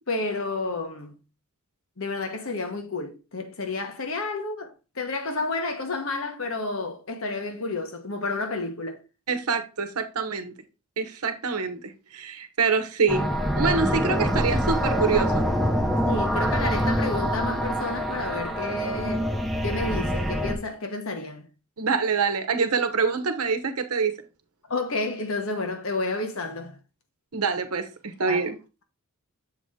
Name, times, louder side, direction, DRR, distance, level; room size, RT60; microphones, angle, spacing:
voice 1, 0.1-1.2 2.0-9.0 16.0-19.3 19.6-21.5 24.7-26.8 28.3-28.4, left 3 dB, 65° left, 1.2 m, -30 dB
voice 2, 9.3-10.5 11.0-15.5 21.8-24.2 27.3-28.6, right 5 dB, 85° right, 0.9 m, -26 dB
sound 1, 13.1-20.6, equal, ahead, 0.7 m, -25 dB
7.1 x 4.2 x 3.6 m
head